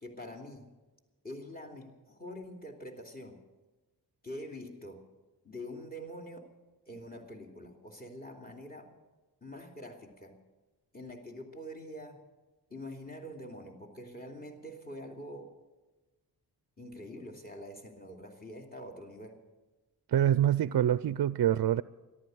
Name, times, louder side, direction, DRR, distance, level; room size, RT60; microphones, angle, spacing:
voice 1, 0.0-0.7 1.2-3.4 4.2-5.0 5.4-6.5 6.9-8.9 9.4-10.4 10.9-12.2 12.7-15.5 16.8-19.4, equal, 20° left, 3 dB, 3.0 m, -45 dB
voice 2, 20.1-21.8, right 11 dB, 60° right, 16 dB, 0.5 m, -25 dB
14.0 x 12.0 x 7.8 m, 1.2 s
cardioid pair, 55°, 40 cm